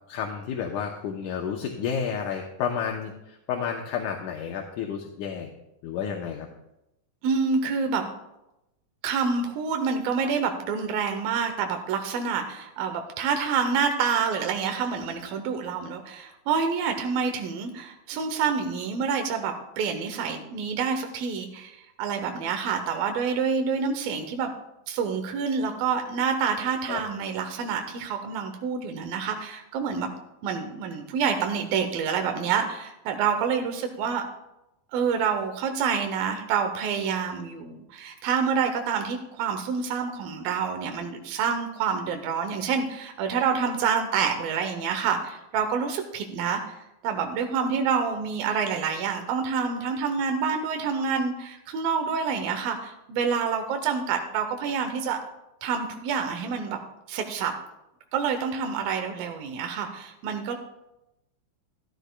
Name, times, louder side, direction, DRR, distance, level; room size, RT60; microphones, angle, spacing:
voice 1, 0.1-5.5 5.8-6.5 26.9-27.0, left 7 dB, 75° left, 1 dB, 2.1 m, -31 dB
voice 2, 7.2-8.1 9.0-24.5 24.9-30.1 30.4-34.2 34.9-46.8 47.0-55.2 55.6-56.8 57.1-57.5 58.1-60.6, right 6 dB, 80° right, 5 dB, 2.6 m, -27 dB
14.5 x 13.5 x 2.3 m, 0.90 s
omnidirectional pair, 4.1 m